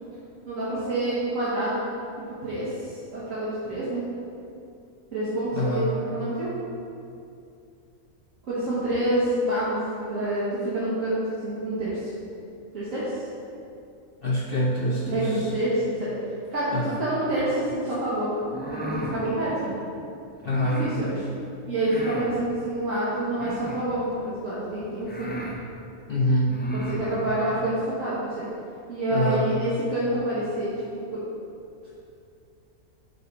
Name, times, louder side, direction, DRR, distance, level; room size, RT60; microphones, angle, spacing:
voice 1, 0.4-1.8 2.4-4.1 5.1-6.5 8.5-12.1 12.7-13.2 14.9-16.1 16.5-18.3 18.7-19.7 20.8-21.3 21.7-25.3 26.7-28.5 28.9-30.7 31.1-31.2, right 1 dB, 65° right, -11 dB, 1.8 m, -27 dB
voice 2, 5.5-6.0 14.2-15.5 16.7-17.0 20.4-20.9 26.1-26.6 29.1-29.5, left 1 dB, 50° left, -3 dB, 0.7 m, -25 dB
sound 1, 18.4-19.2 20.4-20.9 21.8-22.3 23.3-23.9 24.6-24.7 25.0-25.6 26.4-27.0, equal, 15° left, 0.3 m, -35 dB
6.5 x 4.6 x 5.4 m, 2.5 s
omnidirectional pair, 1.5 m